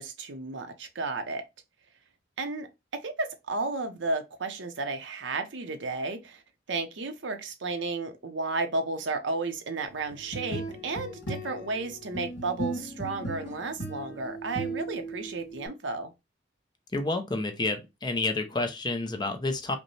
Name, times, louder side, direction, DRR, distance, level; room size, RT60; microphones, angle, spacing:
voice 1, 0.0-1.4 2.4-2.7 3.0-6.4 6.7-16.1, right 3 dB, 75° right, 0.7 m, -33 dB
sound 1, 10.1-15.7, right 2 dB, 70° left, 2.4 m, -37 dB
voice 2, 16.9-19.8, left 2 dB, 20° left, 0.6 m, -29 dB
5.1 x 2.1 x 3.1 m
head